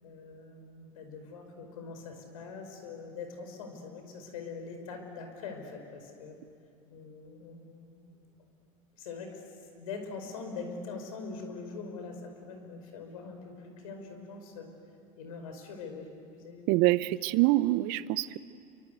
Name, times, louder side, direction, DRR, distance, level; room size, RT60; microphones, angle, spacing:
voice 1, 0.0-6.4 6.9-8.0 9.0-14.7 15.2-16.1 16.3-16.7 17.0-17.1, left 4 dB, 75° left, 5 dB, 5.2 m, -43 dB
voice 2, 16.7-18.4, right 18 dB, 60° right, 17 dB, 0.8 m, -25 dB
28.5 x 24.0 x 8.1 m, 2.4 s
hypercardioid pair, 85°, 18 cm